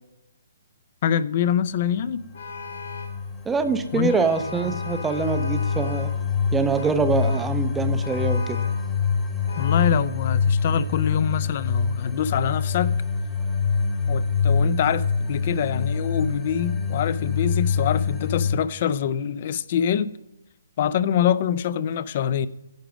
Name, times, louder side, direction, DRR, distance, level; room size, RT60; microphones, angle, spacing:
voice 1, 1.0-2.2 3.9-4.2 9.6-13.0 14.1-20.1 20.8-22.5, left 9 dB, 40° left, 0.4 m, -25 dB
sound 1, 2.2-18.6, left 5 dB, 10° left, 1.1 m, -25 dB
Vehicle horn car horn honking, 2.3-3.2 4.0-6.2 6.7-7.6 8.0-8.9 9.5-10.1, left 3 dB, 65° left, 1.8 m, -37 dB
voice 2, 3.5-6.1 6.5-8.6, right 4 dB, 10° right, 0.5 m, -24 dB
10.5 x 5.1 x 6.0 m
hypercardioid pair, 160°, 0 cm